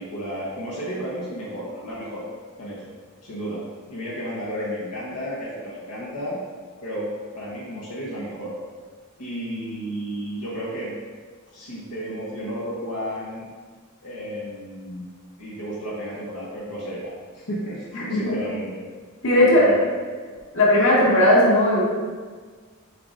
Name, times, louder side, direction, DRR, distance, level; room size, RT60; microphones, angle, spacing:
voice 1, 0.0-2.2 2.6-2.9 3.2-3.6 3.9-6.4 6.8-8.5 9.2-11.0 11.5-13.4 14.0-15.1 15.4-18.8 19.2-19.9, equal, 85° left, -7 dB, 1.3 m, -32 dB
voice 2, 17.9-18.3 19.2-19.7 20.5-21.8, left 1 dB, 60° left, -6 dB, 1.8 m, -17 dB
7.9 x 4.8 x 2.7 m, 1.5 s
head